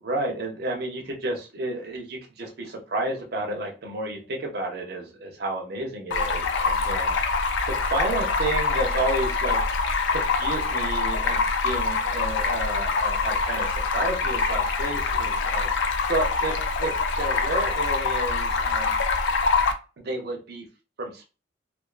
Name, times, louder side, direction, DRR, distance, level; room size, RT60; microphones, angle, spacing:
voice 1, 0.0-7.1 7.7-9.6 10.1-15.7 16.1-16.9 17.2-18.9 20.0-20.6 21.0-21.2, right 2 dB, 60° right, 1 dB, 0.6 m, -31 dB
Stream, 6.1-19.7, left 4 dB, 80° left, 0.4 m, -25 dB
2.4 x 2.3 x 2.4 m, 0.32 s
head